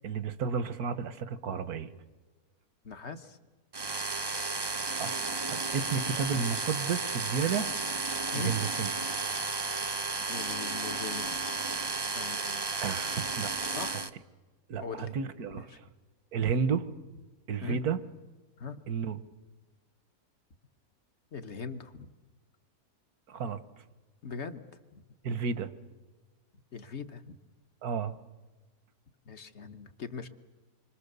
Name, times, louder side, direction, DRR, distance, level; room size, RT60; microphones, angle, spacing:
voice 1, 0.0-1.9 4.9-5.2 5.5-7.7 8.3-8.9 12.8-13.5 14.7-15.7 16.3-16.9 17.5-18.0 18.9-19.2 23.3-23.6 25.2-25.7 27.8-28.2, right 6 dB, 75° right, 13 dB, 1.5 m, -32 dB
voice 2, 2.8-3.4 8.3-8.6 10.3-11.4 12.1-12.7 13.7-14.1 14.8-15.1 15.5-15.8 17.6-17.9 18.6-18.9 21.3-22.1 24.2-24.6 24.9-25.0 26.7-27.3 29.3-30.3, left 5 dB, 50° left, 9 dB, 1.3 m, -41 dB
sound 1, 3.7-14.1, right 4 dB, 30° right, 0.4 m, -33 dB
27.0 x 24.5 x 6.8 m, 1.2 s
omnidirectional pair, 1.6 m